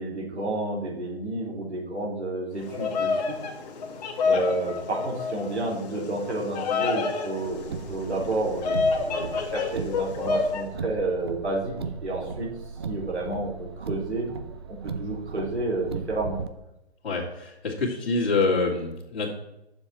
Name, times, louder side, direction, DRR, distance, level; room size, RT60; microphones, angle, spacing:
voice 1, 0.0-3.3 4.3-11.8 12.0-12.5 12.8-14.3 14.7-16.4, right 2 dB, 90° right, -3 dB, 3.9 m, -30 dB
Bird vocalization bird call bird song, 2.6-10.6, left 4 dB, 40° left, 1.6 m, -28 dB
Car, 7.5-16.5, right 5 dB, 25° right, 0.3 m, -37 dB
voice 2, 17.0-19.3, left 3 dB, 60° left, -4 dB, 2.3 m, -26 dB
9.8 x 7.2 x 4.3 m, 0.88 s
figure-of-eight pair, 140°, 33 cm